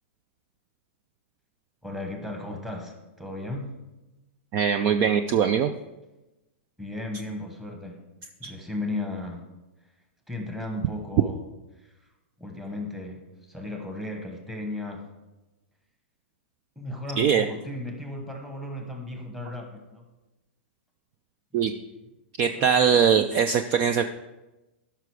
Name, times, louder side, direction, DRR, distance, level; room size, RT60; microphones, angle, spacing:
voice 1, 1.8-3.9 6.8-8.0 8.4-9.5 10.3-11.4 11.8-12.1 12.4-15.1 16.7-20.1 21.5-22.0 22.4-23.0, left 2 dB, 5° right, 2 dB, 1.2 m, -35 dB
voice 2, 4.5-5.7 8.4-8.5 17.2-17.4 21.5-21.7 22.4-24.1, right 7 dB, 30° right, 9 dB, 0.4 m, -21 dB
13.0 x 5.8 x 4.8 m, 1.0 s
hypercardioid pair, 160°, 7 cm